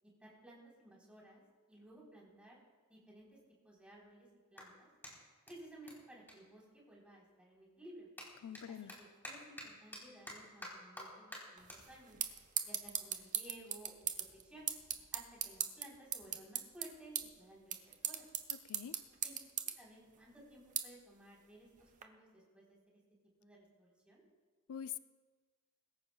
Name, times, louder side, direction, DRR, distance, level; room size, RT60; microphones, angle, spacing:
voice 1, 0.0-1.4 1.7-2.6 2.9-3.3 3.6-4.9 5.5-8.1 8.7-12.2 12.6-14.7 15.1-18.3 19.2-19.4 19.8-23.0 23.4-24.2, right 1 dB, 5° right, -4 dB, 3.8 m, -57 dB
Clapping, 3.2-7.3 7.6-14.2, left 1 dB, 10° left, 3.6 m, -54 dB
voice 2, 8.4-9.0 18.5-19.0 24.7-25.0, left 9 dB, 85° left, 13 dB, 0.4 m, -45 dB
sound 1, 11.6-22.0, right 9 dB, 35° right, 0.9 m, -42 dB
22.0 x 14.5 x 2.3 m, 1.4 s
head